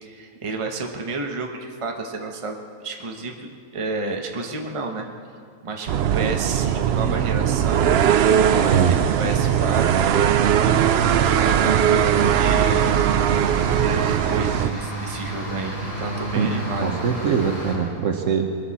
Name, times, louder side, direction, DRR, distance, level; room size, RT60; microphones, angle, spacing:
voice 1, 0.0-2.6 2.8-5.1 5.6-8.0 8.5-12.9 13.7-17.1, right 3 dB, 25° right, 2 dB, 1.0 m, -31 dB
sound 1, 5.9-14.7, right 9 dB, 75° right, 0.5 m, -19 dB
sound 2, 8.4-17.7, right 1 dB, 50° left, 5.8 m, -32 dB
voice 2, 16.8-18.5, right 6 dB, 55° right, 4 dB, 1.3 m, -23 dB
22.0 x 13.5 x 4.2 m, 2.2 s
omnidirectional pair, 1.7 m